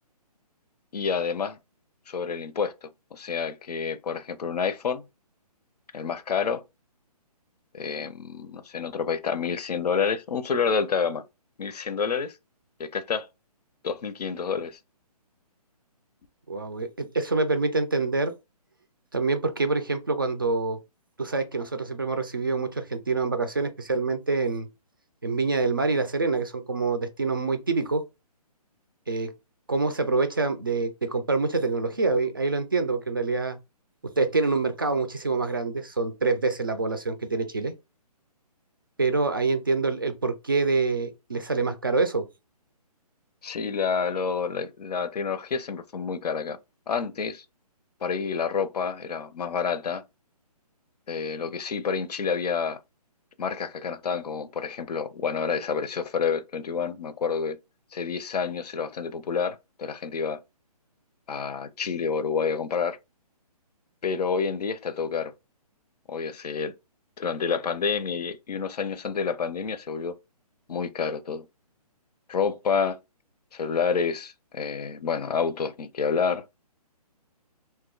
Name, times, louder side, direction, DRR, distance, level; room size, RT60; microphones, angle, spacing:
voice 1, 0.9-1.6 2.1-5.0 5.9-6.6 7.7-11.2 11.6-12.3 12.8-13.3 13.8-14.8 43.4-46.6 46.9-47.4 48.0-50.0 51.1-52.8 53.4-57.6 57.9-60.4 61.3-63.0 64.0-65.3 66.1-66.7 67.2-70.2 70.7-71.5 72.3-73.0 73.5-76.4, left 6 dB, 75° left, 0.6 m, -28 dB
voice 2, 16.5-18.3 19.1-20.8 21.2-24.7 25.2-28.0 29.1-29.3 29.7-33.6 34.0-37.7 39.0-42.3, right 3 dB, 35° right, 0.4 m, -26 dB
2.7 x 2.2 x 3.7 m
hypercardioid pair, 175°, 20 cm